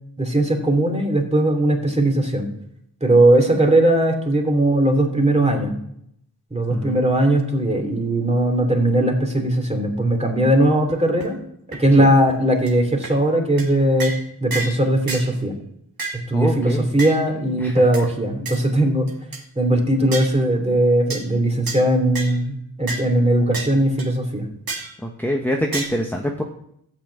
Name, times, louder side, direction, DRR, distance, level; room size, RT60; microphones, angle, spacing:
voice 1, 0.2-2.5 3.0-5.8 6.5-11.4 11.7-14.1 14.4-15.6 16.3-19.1 19.6-24.4, right 1 dB, 15° right, 2 dB, 2.6 m, -19 dB
sound 1, 10.9-11.0 11.2-11.3 11.7-11.8 12.3-12.4 12.7-12.8 13.0-13.1 13.6-13.7 14.0-14.2 14.5-14.8 15.1-15.3 16.0-16.2 17.0-17.2 17.9-18.0 18.5-18.6 19.1-19.4 20.1-20.3 21.1-21.2 21.7-21.8 22.1-22.4 22.9-23.0 23.5-23.7 24.0-24.1 24.7-24.9 25.7-25.9, right 3 dB, 70° right, 2.3 m, -29 dB
voice 2, 16.3-17.0 17.6-17.8 25.0-26.4, equal, 5° left, 1 dB, 1.1 m, -25 dB
13.0 x 5.9 x 8.3 m, 0.74 s
wide cardioid pair, 100°, 37 cm